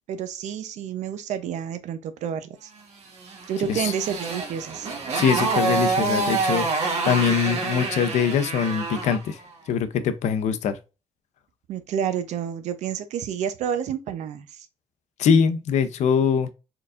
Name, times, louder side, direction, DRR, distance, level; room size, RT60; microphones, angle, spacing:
voice 1, 0.1-2.7 3.5-4.9 11.7-14.7, right 8 dB, 85° right, 0.7 m, -29 dB
Motorcycle, 3.2-9.3, right 3 dB, 70° right, 1.4 m, -27 dB
voice 2, 5.1-6.7 7.0-9.4 9.7-10.8 15.2-16.5, left 7 dB, 80° left, 0.6 m, -22 dB
4.5 x 3.9 x 2.5 m
cardioid pair, 155°, 12 cm